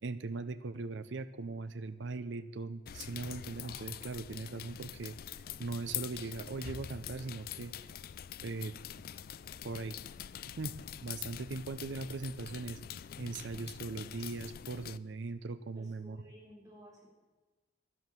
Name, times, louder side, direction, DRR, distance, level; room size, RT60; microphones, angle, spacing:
voice 1, 0.0-7.7 8.4-8.7 9.6-10.0 10.6-10.8 11.0-12.8 13.2-16.2, right 3 dB, 70° right, 12 dB, 0.6 m, -40 dB
sound 1, 2.9-15.0, left 10 dB, 50° left, 0.3 m, -45 dB
voice 2, 15.7-17.1, equal, 20° right, -3 dB, 3.9 m, -55 dB
11.5 x 11.0 x 7.5 m, 1.3 s
head